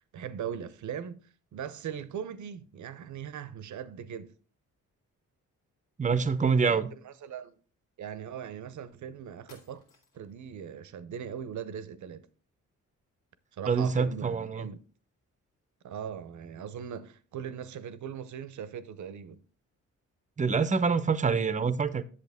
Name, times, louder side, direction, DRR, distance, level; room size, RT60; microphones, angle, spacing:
voice 1, 0.1-1.2 1.5-4.3 6.6-7.6 8.0-9.8 10.1-12.3 13.5-14.8 15.8-19.4, right 8 dB, 65° right, 0.8 m, -40 dB
voice 2, 6.0-6.9 13.7-14.7 20.4-22.0, right 5 dB, 25° right, 0.7 m, -26 dB
sound 1, 9.5-10.4, left 4 dB, 90° left, 2.2 m, -58 dB
8.3 x 7.1 x 3.5 m
cardioid pair, 70°, 32 cm